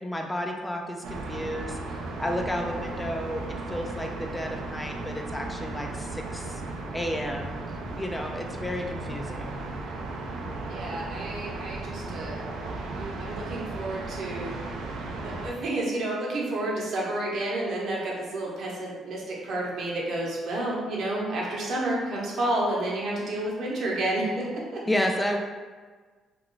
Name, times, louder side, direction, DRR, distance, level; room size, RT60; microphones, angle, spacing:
voice 1, 0.0-1.8 2.2-6.6 6.9-7.6 7.9-9.6 24.9-25.4, left 1 dB, 15° left, 2 dB, 0.3 m, -31 dB
sound 1, 1.0-15.5, right 2 dB, 80° right, 0.4 m, -35 dB
voice 2, 10.7-12.4 12.9-14.5 15.2-24.8, right 1 dB, 65° right, -3 dB, 0.8 m, -30 dB
2.4 x 2.2 x 3.7 m, 1.4 s
cardioid pair, 80°, 0 cm